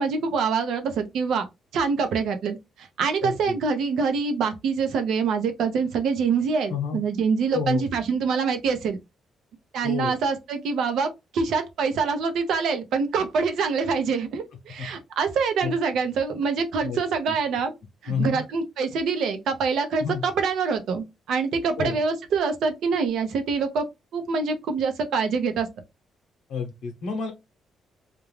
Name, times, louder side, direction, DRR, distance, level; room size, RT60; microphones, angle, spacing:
voice 1, 0.0-1.4 1.7-9.0 9.7-17.7 18.0-23.9 24.1-25.7, right 5 dB, 75° right, 0.7 m, -25 dB
voice 2, 3.2-3.6 6.7-7.0 7.5-7.8 9.8-10.2 14.8-14.9 15.6-15.7 16.8-17.0 17.3-17.4 18.1-18.4 20.0-20.2 21.8-22.0 26.5-27.3, left 6 dB, 80° left, 0.8 m, -29 dB
2.5 x 2.3 x 3.1 m
cardioid pair, 90°, 0 cm